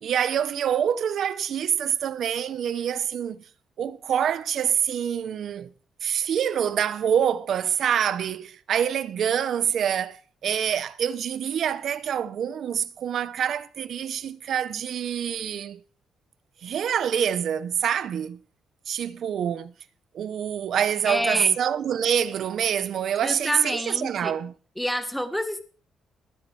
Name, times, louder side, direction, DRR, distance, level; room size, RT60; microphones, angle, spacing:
voice 1, 0.0-3.4 3.8-5.7 6.0-15.8 16.6-18.4 18.9-19.7 20.1-24.5, right 9 dB, 50° right, 0.8 m, -26 dB
voice 2, 21.0-21.6 23.2-24.3 24.8-25.6, equal, ahead, 1.4 m, -28 dB
20.0 x 10.5 x 3.3 m
cardioid pair, 165°, 0 cm